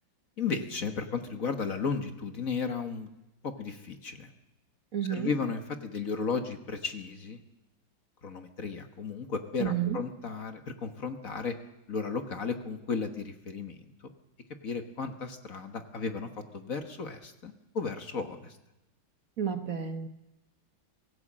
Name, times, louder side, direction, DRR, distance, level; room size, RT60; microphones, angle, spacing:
voice 1, 0.4-3.1 3.4-4.3 5.1-7.4 8.2-11.5 11.9-13.8 14.0-14.1 14.6-18.6, left 5 dB, 45° left, 7 dB, 1.7 m, -34 dB
voice 2, 4.9-5.3 9.6-10.0 19.4-20.1, right 9 dB, 50° right, 8 dB, 1.4 m, -31 dB
25.0 x 16.5 x 7.5 m, 0.95 s
omnidirectional pair, 2.2 m